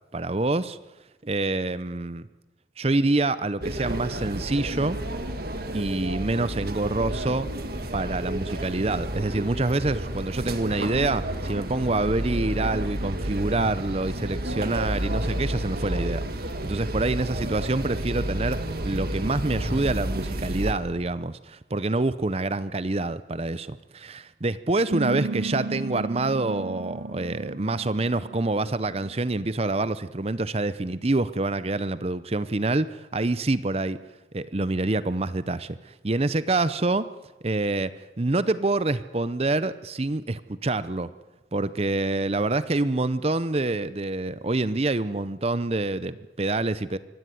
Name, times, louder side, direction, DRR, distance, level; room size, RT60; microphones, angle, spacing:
voice 1, 0.1-0.8 1.2-2.3 2.8-5.0 5.7-7.5 7.9-18.6 18.8-34.0 34.3-37.1 37.4-37.9 38.2-41.1 41.5-47.0, right 2 dB, 35° right, 15 dB, 0.7 m, -26 dB
sound 1, 3.6-20.7, right 1 dB, 55° right, 1.8 m, -31 dB
sound 2, 24.9-29.8, right 3 dB, 80° right, 0.9 m, -35 dB
24.5 x 16.0 x 9.4 m, 1.1 s
head